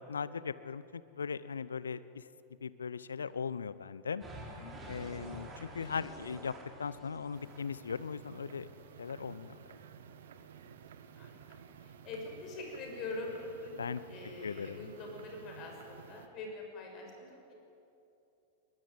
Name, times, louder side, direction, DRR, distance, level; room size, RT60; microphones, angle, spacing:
voice 1, 0.1-2.2 2.6-4.2 4.9-6.5 6.8-8.7 9.0-9.6 13.8-14.0 14.4-14.9, left 6 dB, 70° left, 16 dB, 0.7 m, -38 dB
sound 1, 4.2-8.6, right 1 dB, 20° right, 5.0 m, -49 dB
voice 2, 4.5-5.1 10.4-10.8 11.1-11.4 11.8-17.5, left 3 dB, 35° left, 1 dB, 6.2 m, -44 dB
sound 2, 7.3-16.3, right 7 dB, 60° right, 1.5 m, -53 dB
21.5 x 20.5 x 9.5 m, 2.8 s
figure-of-eight pair, 90°, 0 cm